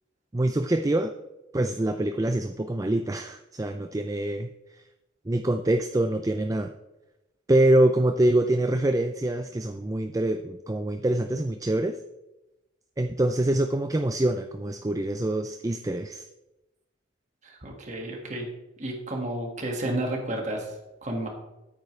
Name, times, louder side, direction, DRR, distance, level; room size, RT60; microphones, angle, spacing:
voice 1, 0.3-1.1 1.5-4.5 5.3-6.7 7.5-12.0 13.0-16.2, right 1 dB, 15° right, 7 dB, 0.4 m, -25 dB
voice 2, 17.4-18.5 18.8-21.3, right 1 dB, 35° right, 1 dB, 1.9 m, -32 dB
14.0 x 8.8 x 3.3 m, 0.97 s
head